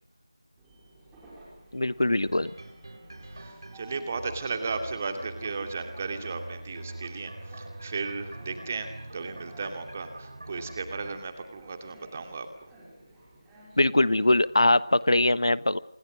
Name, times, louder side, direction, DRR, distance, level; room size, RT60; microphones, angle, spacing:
Train, 0.6-15.0, right 1 dB, 5° right, 5.6 m, -53 dB
voice 1, 1.7-2.5 13.8-15.8, left 1 dB, 70° left, 17 dB, 1.2 m, -22 dB
sound 1, 2.1-11.1, right 1 dB, 55° right, 5.3 m, -43 dB
voice 2, 3.2-12.7, right 4 dB, 25° right, 7 dB, 2.6 m, -35 dB
27.0 x 22.5 x 6.4 m, 0.77 s
figure-of-eight pair, 170°, 3 cm